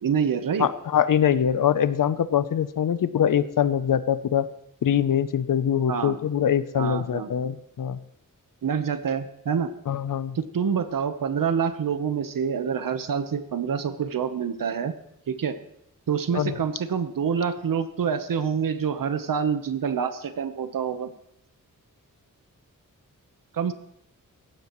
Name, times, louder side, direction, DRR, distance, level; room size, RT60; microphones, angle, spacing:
voice 1, 0.0-0.7 5.9-6.1 6.8-7.3 8.6-9.7 10.3-14.9 15.3-15.6 16.1-21.1 23.5-23.7, right 7 dB, 80° right, 10 dB, 1.1 m, -26 dB
voice 2, 0.6-4.5 4.8-8.0 9.9-10.4 16.3-16.6, left 9 dB, 75° left, 14 dB, 0.7 m, -23 dB
19.0 x 15.5 x 3.1 m, 0.76 s
wide cardioid pair, 125°, 33 cm